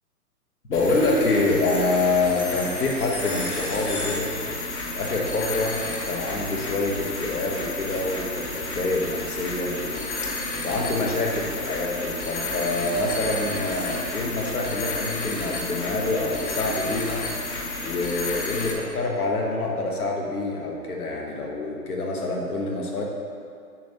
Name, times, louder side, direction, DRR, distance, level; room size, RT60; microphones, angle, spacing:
voice 1, 0.7-4.3 4.9-5.8 6.0-10.3 10.6-17.2 17.8-23.0, left 2 dB, 70° left, 0 dB, 1.3 m, -26 dB
sound 1, 0.7-18.7, left 2 dB, 45° left, 1.1 m, -31 dB
7.3 x 2.9 x 5.9 m, 2.3 s
figure-of-eight pair, 135°, 47 cm